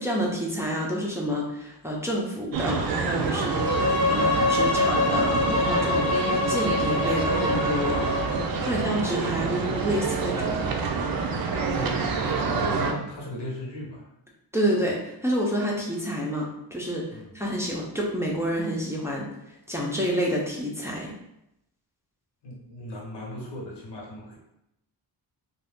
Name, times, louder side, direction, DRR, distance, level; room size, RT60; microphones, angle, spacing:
voice 1, 0.0-3.7 4.1-6.1 6.5-8.1 8.6-10.7 14.5-17.0 17.3-19.3 19.7-21.1, equal, 5° right, -3 dB, 0.5 m, -28 dB
sound 1, 2.5-12.9, right 4 dB, 60° right, 0.5 m, -27 dB
Bowed string instrument, 3.4-8.5, left 3 dB, 40° left, 0.5 m, -25 dB
voice 2, 8.6-9.3 11.7-14.1 17.1-17.4 22.4-24.4, left 1 dB, 85° left, -2 dB, 1.1 m, -37 dB
2.5 x 2.3 x 3.5 m, 0.84 s
wide cardioid pair, 105°, 41 cm